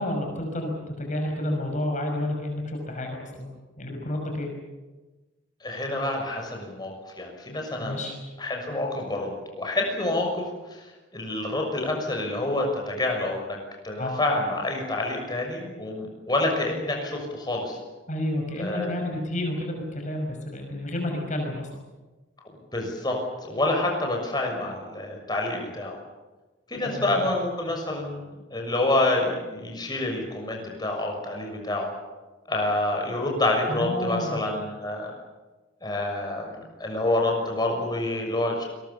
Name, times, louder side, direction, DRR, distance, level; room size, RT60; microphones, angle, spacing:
voice 1, 0.0-3.5 3.8-4.5 7.8-8.2 14.0-14.2 18.1-21.7 26.8-27.0 33.7-34.5, left 1 dB, 40° left, 2 dB, 5.8 m, -30 dB
voice 2, 5.6-8.0 8.4-10.9 11.1-13.6 13.8-17.8 18.5-19.0 22.7-26.0 26.7-31.9 32.5-35.1 35.8-38.6, left 2 dB, 25° left, 1 dB, 6.4 m, -28 dB
28.5 x 22.0 x 7.1 m, 1.2 s
head